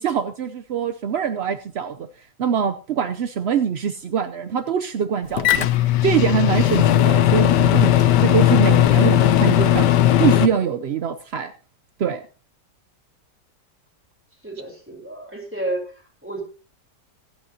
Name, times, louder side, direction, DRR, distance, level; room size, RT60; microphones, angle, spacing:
voice 1, 0.0-7.9 8.2-9.9 10.2-11.5 12.0-12.2, right 7 dB, 60° right, 8 dB, 0.7 m, -24 dB
Microwave oven, 5.4-10.5, left 12 dB, 80° left, 1.4 m, -17 dB
voice 2, 14.4-15.9 16.2-16.4, right 2 dB, 5° right, 0 dB, 4.1 m, -30 dB
25.5 x 8.6 x 2.8 m, 0.34 s
omnidirectional pair, 1.8 m